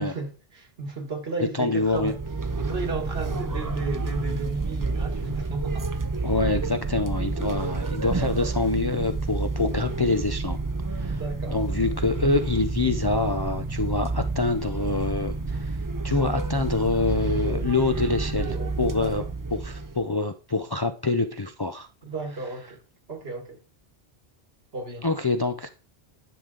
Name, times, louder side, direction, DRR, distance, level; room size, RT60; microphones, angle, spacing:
voice 1, 0.0-2.2 2.6-6.3 11.1-11.7 17.1-17.8 18.4-19.3 22.0-22.8 23.1-23.6 24.7-25.1, right 3 dB, 75° right, 1.8 m, -34 dB
voice 2, 1.6-2.1 6.2-10.6 10.9-11.2 11.5-15.8 16.0-19.2 19.5-21.9 25.0-25.7, left 3 dB, 35° left, 0.4 m, -26 dB
sound 1, 1.8-20.1, right 3 dB, 30° right, 0.4 m, -29 dB
11.0 x 6.6 x 3.8 m
omnidirectional pair, 1.0 m